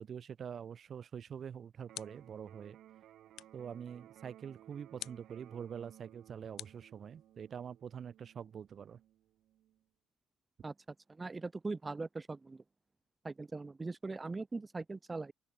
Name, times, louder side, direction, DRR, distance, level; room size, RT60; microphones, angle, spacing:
voice 1, 0.0-2.8 3.5-9.0, right 7 dB, 55° right, 0.9 m, -45 dB
sound 1, 1.2-2.4 3.3-3.7 5.0-5.4 6.6-7.5, left 12 dB, 80° left, 1.6 m, -49 dB
Electric guitar, 1.8-9.8, right 12 dB, 80° right, 4.5 m, -59 dB
voice 2, 11.1-12.6 13.2-15.3, right 3 dB, 25° right, 1.0 m, -40 dB
open air
cardioid pair, 90°, 0 cm